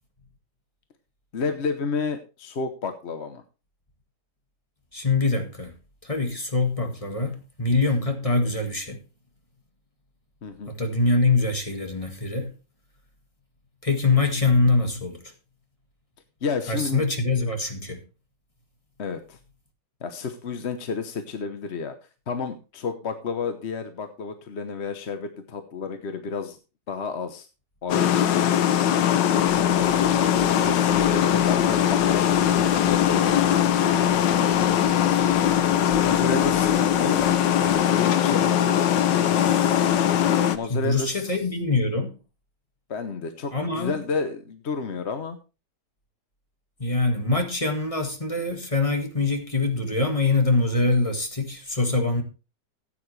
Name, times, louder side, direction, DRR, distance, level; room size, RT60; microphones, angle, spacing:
voice 1, 1.3-3.4 10.4-10.7 16.4-17.0 19.0-19.4 20.0-21.9 22.3-26.6 26.9-27.5 27.8-28.1 29.6-33.5 36.0-37.2 37.9-38.7 40.5-41.4 42.9-45.4, left 4 dB, 45° left, 1.1 m, -31 dB
voice 2, 4.9-5.7 6.0-9.0 10.7-12.5 13.8-15.2 16.7-18.0 34.9-35.2 40.7-42.1 43.5-44.0 46.8-52.2, left 3 dB, 20° left, 1.8 m, -24 dB
sound 1, 27.9-40.6, left 10 dB, 90° left, 1.5 m, -21 dB
sound 2, 29.3-37.8, right 3 dB, 50° right, 5.6 m, -44 dB
14.5 x 9.0 x 3.2 m
omnidirectional pair, 1.9 m